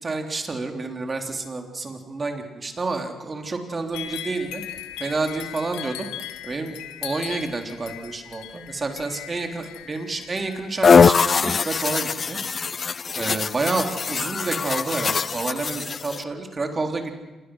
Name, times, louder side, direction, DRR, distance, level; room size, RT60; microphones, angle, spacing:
voice 1, 0.0-4.6 5.0-6.1 6.4-6.8 7.0-12.4 13.2-17.1, right 3 dB, 35° right, 4 dB, 3.6 m, -29 dB
sound 1, 3.9-10.9, left 11 dB, 90° left, 1.5 m, -38 dB
sound 2, 10.8-16.2, left 5 dB, 45° left, 0.6 m, -21 dB
26.5 x 19.5 x 6.4 m, 1.2 s
supercardioid pair, 65°, 0 cm